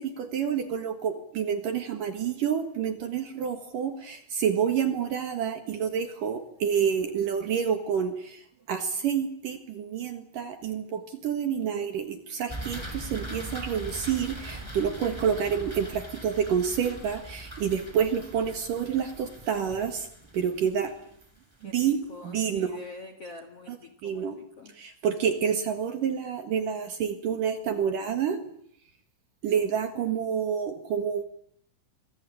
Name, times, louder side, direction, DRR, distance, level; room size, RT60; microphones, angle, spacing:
voice 1, 0.0-20.1 20.3-20.9 21.6-22.8 23.7-23.8 24.0-24.4 24.7-28.4 29.4-31.2, right 7 dB, 55° right, 7 dB, 2.8 m, -28 dB
sound 1, 12.5-21.6, right 1 dB, 5° right, 4.2 m, -41 dB
voice 2, 21.6-24.7, left 3 dB, 50° left, 7 dB, 1.9 m, -45 dB
26.0 x 22.5 x 8.5 m, 0.67 s
omnidirectional pair, 5.4 m